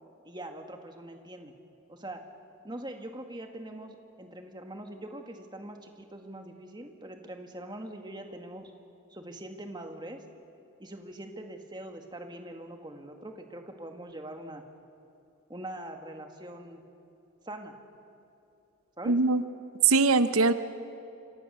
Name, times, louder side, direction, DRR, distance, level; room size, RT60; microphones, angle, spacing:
voice 1, 0.2-1.5 1.9-2.2 2.6-8.7 9.1-10.2 10.8-14.6 15.5-16.8 17.4-17.7 19.0-19.2, right 1 dB, 20° right, 4 dB, 1.8 m, -42 dB
voice 2, 19.1-19.4 19.8-20.5, right 4 dB, 90° right, 11 dB, 0.8 m, -21 dB
28.0 x 25.5 x 6.8 m, 2.8 s
head